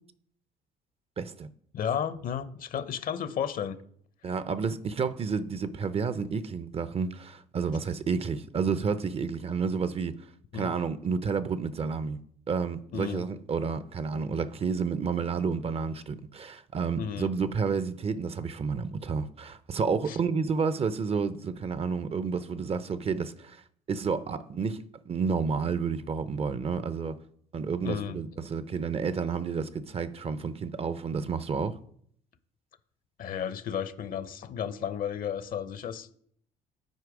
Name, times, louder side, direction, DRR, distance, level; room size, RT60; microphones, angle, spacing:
voice 1, 1.2-1.5 4.2-10.2 10.5-12.2 12.5-23.6 23.9-27.2 27.5-31.8, right 5 dB, 35° right, 0.5 m, -30 dB
voice 2, 1.7-3.8 10.5-10.7 12.9-13.2 16.9-17.3 20.1-20.2 27.8-28.2 33.2-36.2, left 8 dB, 55° left, 0.7 m, -33 dB
8.0 x 4.6 x 4.9 m
supercardioid pair, 80°, 17 cm